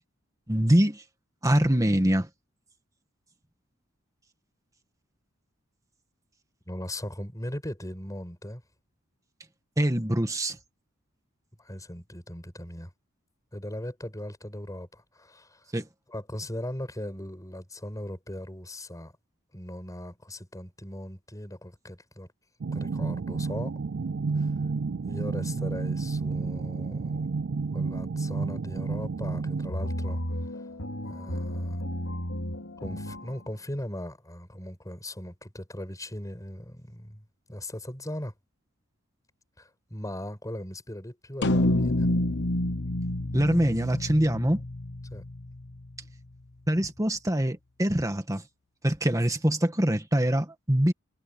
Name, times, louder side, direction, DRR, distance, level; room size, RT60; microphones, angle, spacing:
voice 1, 0.5-1.0 1.4-2.3 9.8-10.6 15.7-15.9 43.3-44.6 46.7-48.4 48.8-50.9, right 1 dB, 15° right, 2.0 m, -24 dB
voice 2, 6.7-8.6 11.6-12.9 13.5-15.7 16.1-19.1 19.5-22.3 22.7-23.7 24.4-24.5 25.1-27.3 27.7-30.2 30.5-30.6 31.0-31.8 32.8-37.2 37.5-38.3 39.6-42.1 45.1-45.3, left 1 dB, 15° left, 7.3 m, -39 dB
sound 1, 22.6-29.7, right 4 dB, 55° right, 0.4 m, -30 dB
sound 2, 29.7-33.4, equal, 80° left, 2.9 m, -33 dB
sound 3, 41.4-45.9, left 1 dB, 60° left, 1.2 m, -28 dB
head